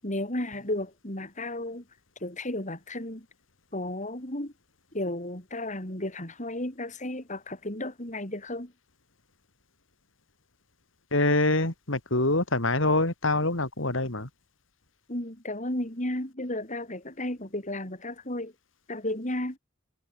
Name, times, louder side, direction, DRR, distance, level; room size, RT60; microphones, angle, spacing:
voice 1, 0.0-1.8 2.2-3.3 3.7-4.5 4.9-8.7 15.1-18.5 18.9-19.6, left 1 dB, 40° left, 7.5 m, -33 dB
voice 2, 11.1-14.3, left 2 dB, 75° left, 4.0 m, -25 dB
head